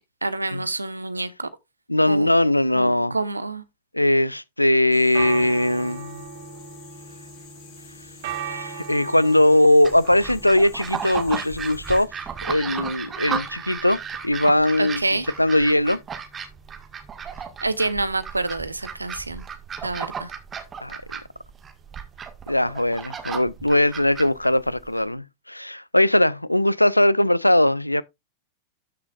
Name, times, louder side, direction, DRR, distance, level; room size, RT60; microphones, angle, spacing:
voice 1, 0.2-1.5 2.1-2.3 2.7-3.6 14.8-15.3 17.6-19.4 19.8-20.3, right 2 dB, 80° right, 0.8 m, -27 dB
voice 2, 1.9-3.1 3.9-6.2 8.4-12.1 12.4-15.0 15.4-16.0 20.8-21.0 22.5-28.0, left 1 dB, 85° left, 0.4 m, -20 dB
sound 1, 4.8-23.8, right 6 dB, 55° right, 1.9 m, -41 dB
sound 2, 4.9-12.1, left 5 dB, 45° left, 5.9 m, -49 dB
sound 3, 9.8-25.0, right 7 dB, 20° right, 1.7 m, -34 dB
13.0 x 6.5 x 2.5 m
figure-of-eight pair, 90°, 0 cm